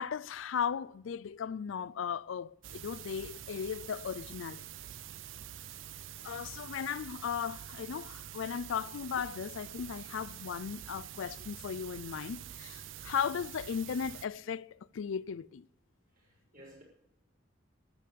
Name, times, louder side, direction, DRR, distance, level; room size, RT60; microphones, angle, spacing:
voice 1, 0.0-4.6 6.2-15.7, left 7 dB, 80° left, 0.4 m, -36 dB
sound 1, 2.6-14.3, right 10 dB, 80° right, 0.5 m, -46 dB
voice 2, 16.1-16.8, right 1 dB, 45° right, 6.2 m, -57 dB
13.0 x 8.5 x 8.2 m
head